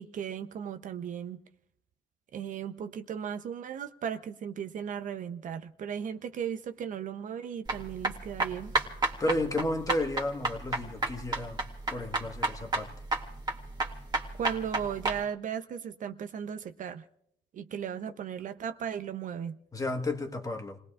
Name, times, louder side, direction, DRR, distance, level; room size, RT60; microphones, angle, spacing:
voice 1, 0.0-1.4 2.3-8.7 14.4-17.0 17.5-19.6, right 8 dB, 50° right, 0.7 m, -36 dB
sound 1, 7.7-15.2, right 3 dB, 25° right, 2.0 m, -31 dB
voice 2, 9.2-11.6 11.9-12.9 19.7-20.8, left 1 dB, 20° left, 1.4 m, -32 dB
29.0 x 19.0 x 2.5 m
cardioid pair, 110°, 17 cm